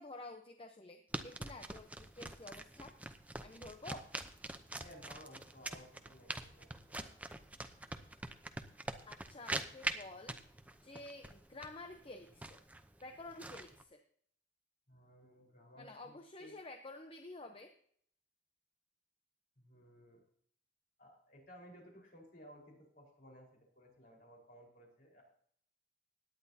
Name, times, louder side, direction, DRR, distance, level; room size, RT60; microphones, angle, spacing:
voice 1, 0.0-2.9 3.4-4.0 9.1-10.4 10.8-12.6 13.0-14.0 15.8-17.7, left 2 dB, 30° left, 5 dB, 0.8 m, -50 dB
sound 1, 1.1-13.8, right 2 dB, 10° right, 0.7 m, -44 dB
voice 2, 4.7-7.1 14.9-16.6 19.6-20.2 21.0-23.5 23.7-25.2, equal, 50° left, -1 dB, 4.7 m, -58 dB
17.0 x 10.5 x 2.8 m, 0.62 s
head